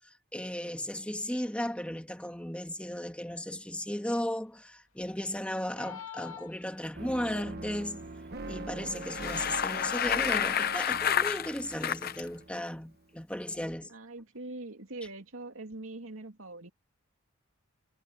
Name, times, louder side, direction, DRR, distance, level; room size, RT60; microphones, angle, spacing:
voice 1, 0.3-8.1 8.5-13.9, left 1 dB, 5° left, 2.6 m, -35 dB
sound 1, 5.7-7.2, left 9 dB, 80° left, 2.4 m, -45 dB
sound 2, 6.9-13.0, right 2 dB, 50° right, 1.4 m, -43 dB
Bicycle, 8.9-12.2, left 8 dB, 50° left, 0.8 m, -30 dB
voice 2, 13.9-16.7, right 2 dB, 85° right, 2.7 m, -42 dB
head